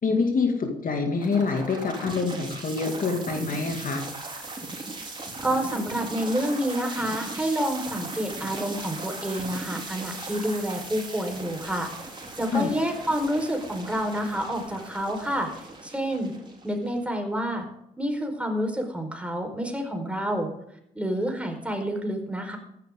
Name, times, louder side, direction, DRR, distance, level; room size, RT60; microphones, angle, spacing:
voice 1, 0.0-4.0 12.5-12.7, left 4 dB, 50° left, 3 dB, 2.3 m, -26 dB
sound 1, 1.2-17.2, right 2 dB, 25° right, 4.5 m, -38 dB
voice 2, 5.4-11.9 12.4-15.5 15.8-16.3 16.6-17.6 18.0-20.5 20.9-22.6, equal, 5° right, 3 dB, 4.6 m, -28 dB
14.5 x 11.5 x 3.8 m, 0.76 s
supercardioid pair, 55°, 18 cm